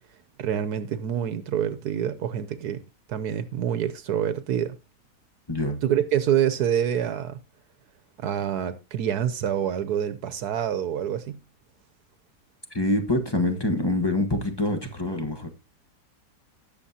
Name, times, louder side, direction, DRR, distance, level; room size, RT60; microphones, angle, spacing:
voice 1, 0.4-2.8 3.1-4.8 5.8-7.4 8.2-11.4, right 9 dB, 75° right, 1.3 m, -26 dB
voice 2, 5.5-5.8 12.7-15.5, left 1 dB, 15° left, 1.1 m, -25 dB
19.0 x 7.0 x 2.8 m
omnidirectional pair, 1.7 m